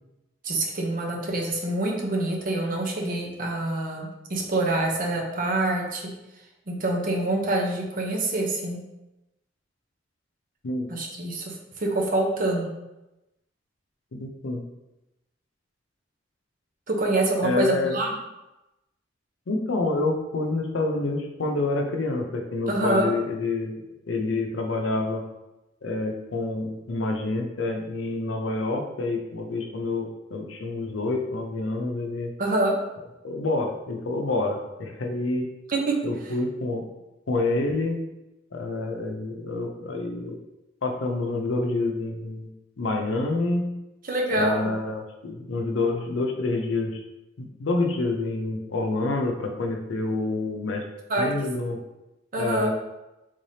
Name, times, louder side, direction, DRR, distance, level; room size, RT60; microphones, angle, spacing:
voice 1, 0.4-6.1 6.7-8.8 10.9-12.7 16.9-18.1 22.7-23.1 32.4-32.7 35.7-36.0 44.0-44.7 51.1-51.3 52.3-52.7, right 2 dB, 45° right, 0 dB, 0.7 m, -26 dB
voice 2, 14.1-14.6 17.4-18.0 19.5-23.7 24.1-25.2 25.8-32.3 33.2-35.5 36.0-36.8 37.3-38.0 38.5-40.4 40.8-42.5 42.8-43.6 44.3-47.0 47.4-50.8 51.2-51.8 52.4-52.7, left 2 dB, 85° left, 3 dB, 0.6 m, -27 dB
3.6 x 3.3 x 2.7 m, 0.96 s
head